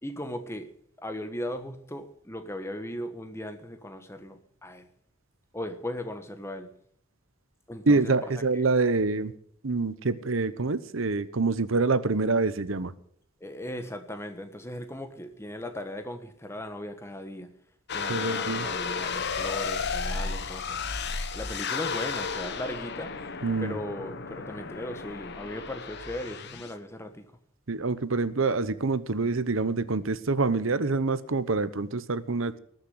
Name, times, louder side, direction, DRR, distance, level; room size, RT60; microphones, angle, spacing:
voice 1, 0.0-0.7 1.0-4.9 5.5-6.7 7.7-8.3 13.4-17.5 17.9-20.8 21.3-23.1 23.6-27.2, left 1 dB, 10° left, 1.4 m, -37 dB
voice 2, 7.9-9.3 9.6-12.9 18.1-18.7 23.4-23.8 27.7-32.6, right 3 dB, 70° right, 0.9 m, -26 dB
sound 1, 17.9-26.8, left 5 dB, 55° left, 1.1 m, -33 dB
19.5 x 6.7 x 7.9 m
head